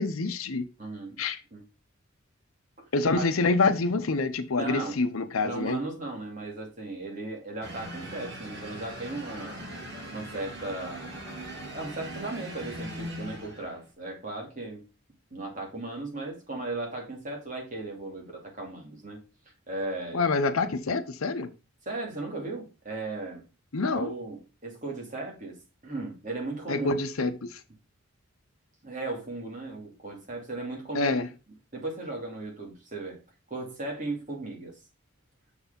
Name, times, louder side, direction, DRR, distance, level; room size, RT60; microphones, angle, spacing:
voice 1, 0.0-0.7 1.2-1.4 2.9-5.8 20.1-21.5 23.7-24.1 26.7-27.6 30.9-31.3, left 3 dB, 85° left, 0.7 m, -26 dB
voice 2, 0.8-1.2 1.5-1.6 2.8-3.2 4.6-5.0 5.4-9.6 10.1-11.1 11.7-14.8 15.3-19.2 19.7-20.2 21.9-23.4 23.9-26.9 28.8-31.2 31.7-33.2 33.5-34.7, right 2 dB, 40° right, 2.7 m, -36 dB
sound 1, 7.6-13.9, right 1 dB, 55° right, 2.3 m, -40 dB
6.8 x 4.8 x 5.1 m
head